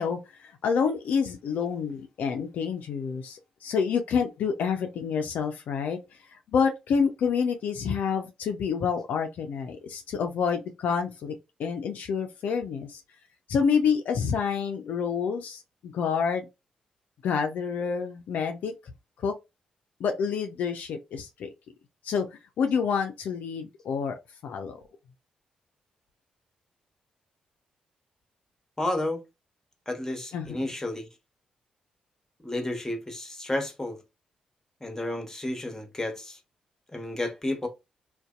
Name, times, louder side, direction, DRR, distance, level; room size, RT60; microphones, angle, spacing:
voice 1, 0.0-13.0 13.5-16.5 17.2-18.7 19.2-19.3 20.0-21.5 22.0-24.8 30.3-30.6, left 6 dB, 70° left, 0.4 m, -28 dB
voice 2, 28.8-29.2 29.9-31.1 32.4-34.0 34.8-36.4 36.9-37.7, left 1 dB, 15° left, 0.9 m, -31 dB
2.5 x 2.2 x 2.3 m
hypercardioid pair, 40°, 3 cm